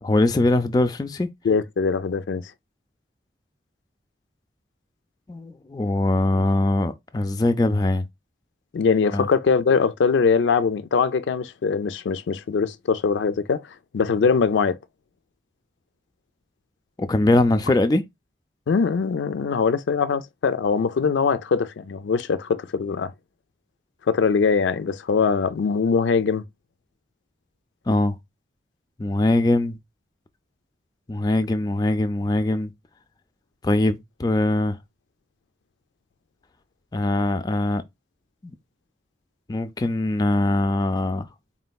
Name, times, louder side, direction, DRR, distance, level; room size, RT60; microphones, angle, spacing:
voice 1, 0.0-1.3 5.3-8.1 9.1-9.3 17.0-18.0 27.9-28.2 29.0-29.8 31.1-32.7 33.6-34.8 36.9-37.8 38.4-38.5 39.5-41.3, left 2 dB, 20° left, 0.3 m, -22 dB
voice 2, 1.4-2.4 8.7-13.6 13.9-14.8 18.7-23.1 24.1-26.4, left 5 dB, 90° left, 0.4 m, -22 dB
4.2 x 3.7 x 2.3 m
head